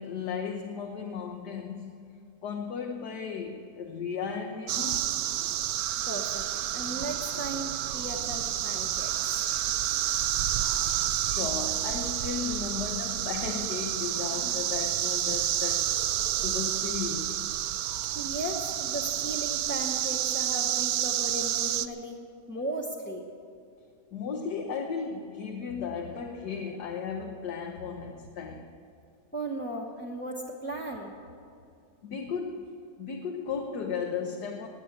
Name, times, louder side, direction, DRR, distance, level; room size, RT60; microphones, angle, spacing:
voice 1, 0.0-1.9 2.4-5.1 11.2-15.9 16.4-17.4 24.1-28.7 32.0-32.7 33.0-34.7, left 6 dB, 70° left, 2 dB, 1.5 m, -35 dB
sound 1, 4.7-21.9, right 12 dB, 70° right, 0.9 m, -29 dB
voice 2, 6.1-9.3 18.1-22.2 22.5-23.3 29.3-31.1, right 1 dB, 10° left, -2 dB, 0.8 m, -36 dB
19.0 x 9.3 x 8.1 m, 2.4 s
omnidirectional pair, 1.9 m